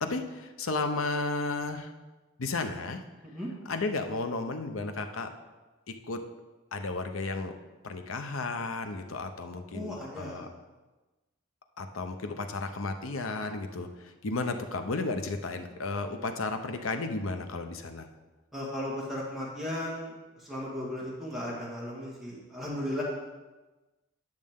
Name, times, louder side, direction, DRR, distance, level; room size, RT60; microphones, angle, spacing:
voice 1, 0.0-1.9 2.4-3.0 3.7-5.3 6.1-6.2 6.7-7.5 7.8-10.5 11.8-18.1, left 3 dB, 85° left, 7 dB, 0.8 m, -33 dB
voice 2, 9.7-10.5 18.5-23.0, left 1 dB, ahead, -7 dB, 1.7 m, -36 dB
10.5 x 6.5 x 3.7 m, 1.2 s
head